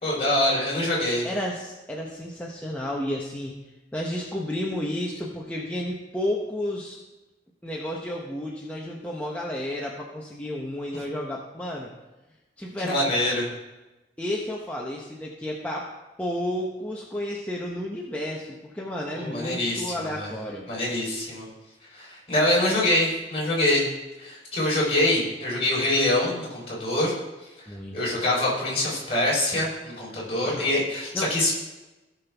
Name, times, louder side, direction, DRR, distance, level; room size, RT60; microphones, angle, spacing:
voice 1, 0.0-1.3 12.8-13.5 19.1-20.3 20.7-21.5 21.9-23.9 24.2-27.1 27.9-31.5, left 1 dB, 35° left, -4 dB, 3.9 m, -25 dB
voice 2, 1.2-3.6 3.9-7.0 7.6-11.9 12.6-13.1 14.2-15.9 16.2-20.7 27.7-28.0 30.2-30.7 31.1-31.3, left 1 dB, 10° left, -3 dB, 0.9 m, -32 dB
17.0 x 5.9 x 3.5 m, 1.1 s
head